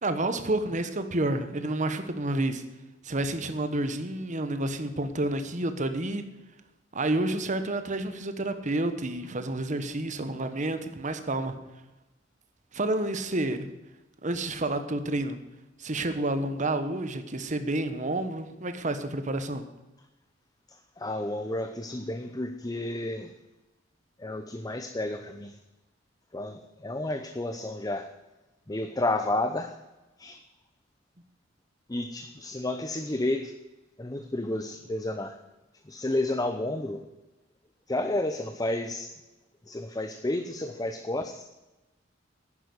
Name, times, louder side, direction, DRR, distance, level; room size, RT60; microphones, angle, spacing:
voice 1, 0.0-2.6 3.0-6.2 6.9-11.6 12.7-13.7 14.2-15.4 15.8-19.6, right 2 dB, 40° right, 9 dB, 1.3 m, -29 dB
voice 2, 20.7-23.3 24.2-25.6 26.3-28.1 28.7-29.8 30.2-30.4 31.9-33.5 34.0-35.3 35.8-37.1 37.9-39.1 39.7-41.5, left 1 dB, 20° left, 7 dB, 0.8 m, -31 dB
11.0 x 10.0 x 8.2 m, 1.1 s
head